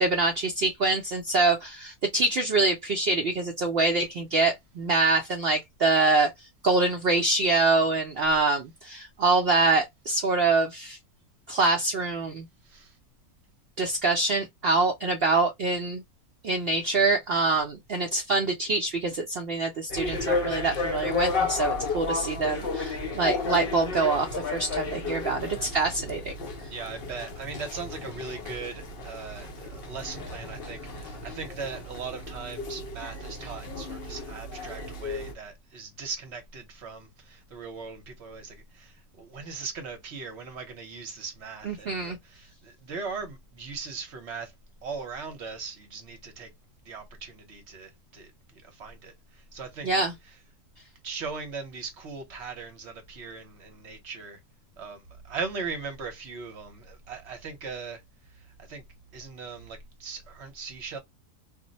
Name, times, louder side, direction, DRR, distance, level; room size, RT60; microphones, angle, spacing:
voice 1, 0.0-11.0 11.5-12.5 13.8-16.0 16.4-26.3 26.6-26.7 33.4-33.5 41.6-42.2 49.8-50.1, right 3 dB, 85° right, 0.5 m, -25 dB
voice 2, 12.6-13.0 26.7-44.5 44.8-46.5 46.8-49.9 51.0-54.4 54.8-58.0 58.3-58.8 59.1-61.0, right 4 dB, 55° right, 0.9 m, -39 dB
sound 1, 19.9-35.3, left 3 dB, 55° left, 0.7 m, -33 dB
2.5 x 2.0 x 3.8 m
omnidirectional pair, 1.6 m